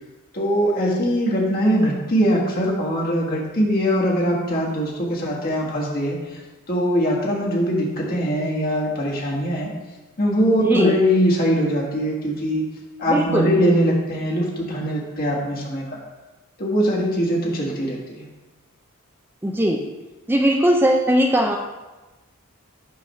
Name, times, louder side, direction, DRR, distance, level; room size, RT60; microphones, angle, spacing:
voice 1, 0.3-6.4 6.7-9.7 10.2-12.6 13.0-15.8 16.6-18.2, equal, 45° left, -3 dB, 1.5 m, -21 dB
voice 2, 10.6-11.0 13.1-13.5 19.4-19.8 20.3-21.6, equal, 10° right, 1 dB, 0.4 m, -19 dB
6.2 x 3.3 x 5.5 m, 1.1 s
head